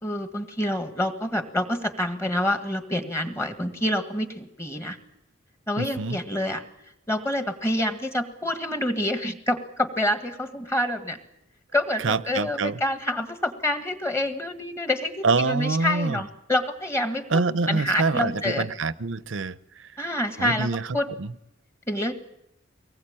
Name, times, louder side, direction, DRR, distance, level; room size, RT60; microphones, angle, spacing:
voice 1, 0.0-5.0 5.7-6.6 7.1-11.2 11.7-17.4 17.7-18.7 20.0-20.7 20.9-21.1 21.9-22.1, left 1 dB, 15° left, 8 dB, 1.6 m, -27 dB
voice 2, 5.8-6.2 12.0-12.8 15.2-16.2 17.3-19.9 20.4-21.3, right 3 dB, 75° right, 16 dB, 0.8 m, -26 dB
24.0 x 20.0 x 8.8 m, 0.84 s
head